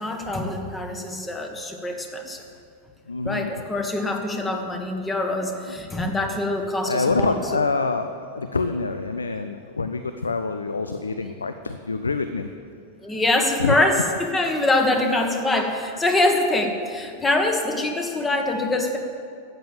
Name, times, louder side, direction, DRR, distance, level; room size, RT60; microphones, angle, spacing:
voice 1, 0.0-2.4 3.2-7.4 13.0-19.0, left 2 dB, 15° left, 4 dB, 1.6 m, -24 dB
voice 2, 3.1-3.5 5.7-5.8 6.8-12.5 13.6-13.7, left 4 dB, 75° left, 9 dB, 0.5 m, -26 dB
12.5 x 8.9 x 7.3 m, 2.4 s
figure-of-eight pair, 90°, 0 cm